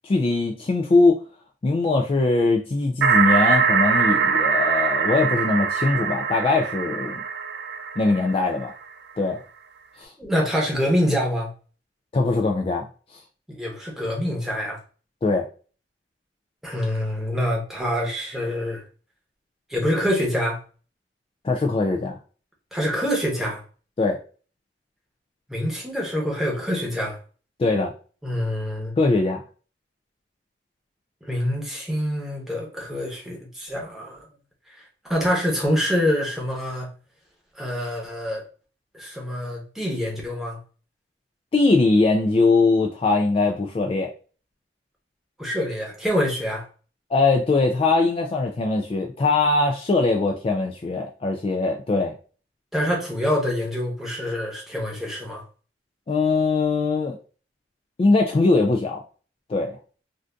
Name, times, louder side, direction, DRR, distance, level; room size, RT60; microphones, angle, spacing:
voice 1, 0.0-1.2 1.6-7.2 8.0-8.7 9.2-9.4 10.0-10.1 12.1-12.9 13.1-13.2 15.2-15.4 21.4-22.1 24.0-24.2 27.6-27.9 29.0-29.4 41.5-44.1 47.1-52.1 56.1-57.2 58.0-59.0 59.5-59.8, left 3 dB, 30° left, 2 dB, 0.3 m, -21 dB
sound 1, 3.0-8.7, right 6 dB, 65° right, 0.3 m, -22 dB
voice 2, 10.2-11.5 13.5-14.8 16.6-18.8 19.7-20.6 22.7-23.6 25.5-27.2 28.2-28.9 31.2-34.3 34.7-36.9 37.5-38.4 38.9-40.6 45.4-46.7 52.7-55.4, equal, ahead, -2 dB, 0.9 m, -26 dB
2.5 x 2.5 x 3.3 m, 0.38 s
head